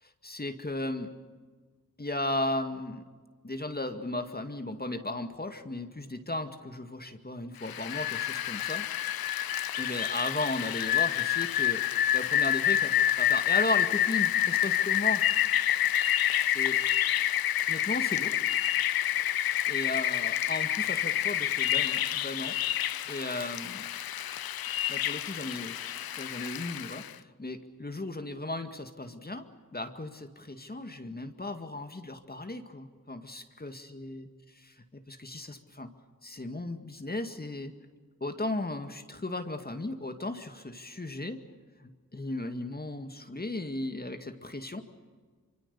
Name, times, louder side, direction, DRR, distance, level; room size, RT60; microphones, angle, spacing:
voice 1, 0.2-1.1 2.0-3.1 3.4-8.9 9.8-11.9 12.1-15.2 16.4-16.9 17.7-18.4 19.7-22.5 23.1-23.9 24.9-25.8 26.1-29.5 29.7-34.3 34.9-35.9 36.2-37.7 38.2-41.4 41.8-44.8, left 2 dB, 25° left, 6 dB, 2.1 m, -36 dB
Rain, 7.6-27.1, left 11 dB, 90° left, 0.6 m, -28 dB
25.0 x 24.5 x 7.0 m, 1.5 s
cardioid pair, 50°, 35 cm